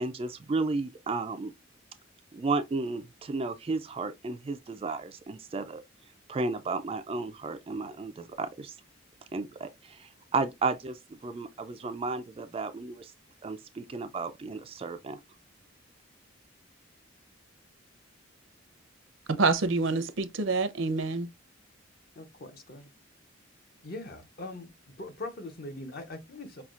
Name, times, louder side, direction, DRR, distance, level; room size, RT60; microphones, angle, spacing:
voice 1, 0.0-1.5 2.3-5.8 6.3-8.8 9.3-13.1 13.4-15.2, right 3 dB, 30° right, 0.3 m, -33 dB
voice 2, 19.3-21.3, right 3 dB, 70° right, 0.6 m, -27 dB
voice 3, 22.2-22.9 23.8-24.7 25.0-26.6, left 2 dB, 50° left, 0.8 m, -41 dB
5.6 x 2.3 x 2.4 m
head